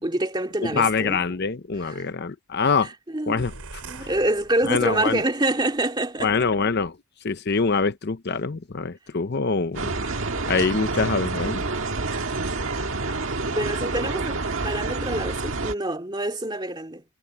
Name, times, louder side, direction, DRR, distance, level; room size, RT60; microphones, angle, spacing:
voice 1, 0.0-1.2 1.8-2.1 2.8-3.4 3.8-6.5 13.5-17.0, right 1 dB, 20° right, 2.3 m, -26 dB
voice 2, 0.6-2.9 3.3-3.5 4.0-4.1 4.7-5.2 6.2-6.9 7.2-9.9 10.5-11.6, left 4 dB, 45° left, 0.7 m, -24 dB
sound 1, 3.4-5.2, right 3 dB, 90° right, 4.7 m, -42 dB
sound 2, 9.7-15.7, right 3 dB, 60° right, 1.8 m, -28 dB
head